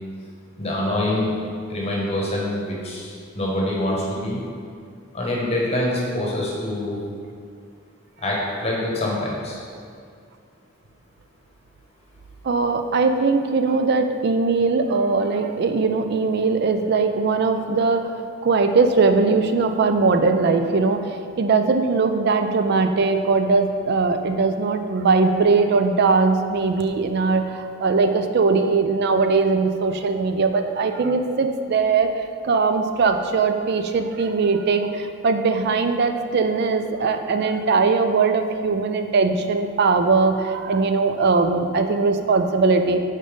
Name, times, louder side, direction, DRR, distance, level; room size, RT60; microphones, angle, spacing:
voice 1, 0.6-1.4 1.7-4.4 5.1-7.0 8.2-9.6, left 1 dB, 30° left, -4 dB, 1.0 m, -25 dB
voice 2, 12.4-21.1 21.4-43.0, right 4 dB, 50° right, 7 dB, 0.4 m, -20 dB
5.2 x 4.0 x 5.0 m, 2.2 s
head